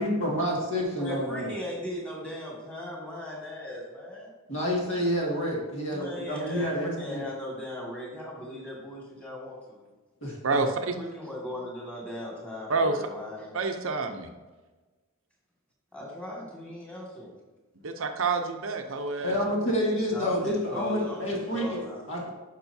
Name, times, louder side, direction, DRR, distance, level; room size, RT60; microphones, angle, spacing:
voice 1, 0.0-1.5 4.5-7.2 10.2-10.6 19.2-21.8 22.1-22.3, equal, 60° left, -2 dB, 2.0 m, -28 dB
voice 2, 1.0-4.3 5.9-9.9 11.0-13.8 15.9-17.3 20.1-22.0, left 1 dB, 5° left, -4 dB, 2.0 m, -38 dB
voice 3, 10.4-10.9 12.7-13.1 13.5-14.3 17.8-19.4, right 3 dB, 60° right, 5 dB, 0.7 m, -28 dB
9.1 x 6.0 x 2.7 m, 1.2 s
head